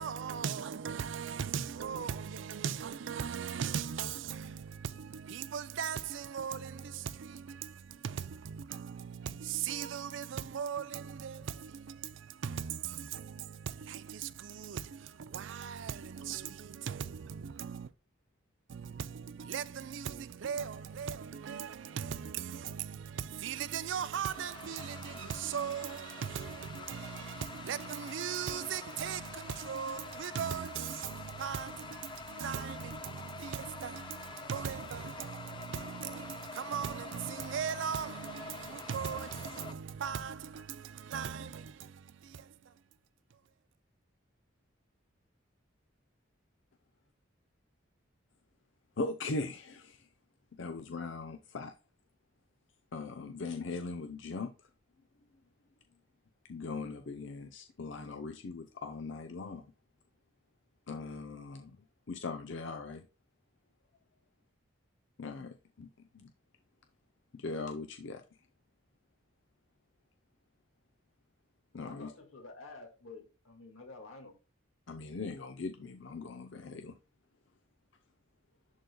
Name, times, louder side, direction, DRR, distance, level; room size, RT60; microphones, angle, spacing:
voice 1, 0.0-17.9 18.7-42.7, right 7 dB, 70° right, 0.4 m, -39 dB
sound 1, 23.6-39.7, left 4 dB, 25° left, 0.4 m, -47 dB
voice 2, 49.0-50.1 50.5-51.7 52.9-54.5 56.5-59.6 60.9-61.8 62.1-63.0 65.2-65.9 66.1-66.3 67.3-68.2 71.7-72.1 74.9-77.0, left 3 dB, 65° left, 0.6 m, -40 dB
voice 3, 71.8-74.3, left 3 dB, 85° left, 1.9 m, -50 dB
11.5 x 3.9 x 2.2 m
head